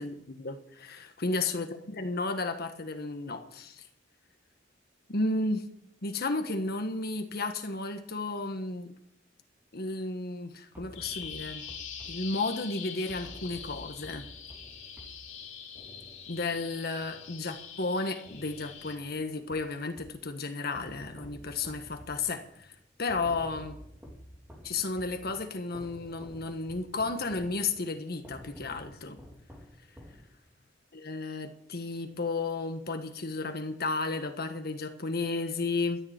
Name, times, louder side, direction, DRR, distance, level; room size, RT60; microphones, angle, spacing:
voice 1, 0.0-3.9 5.1-5.6 6.0-8.9 9.7-11.6 12.0-14.2 16.3-22.7 23.0-23.8 24.6-29.2 30.9-36.0, left 3 dB, 55° left, 7 dB, 1.5 m, -33 dB
sound 1, 10.7-17.9 18.2-20.3 20.7-30.7, equal, 10° right, 2.6 m, -51 dB
Bird vocalization bird call bird song, 10.9-18.9, left 7 dB, 80° left, 2.8 m, -44 dB
13.0 x 6.9 x 9.2 m, 0.71 s
head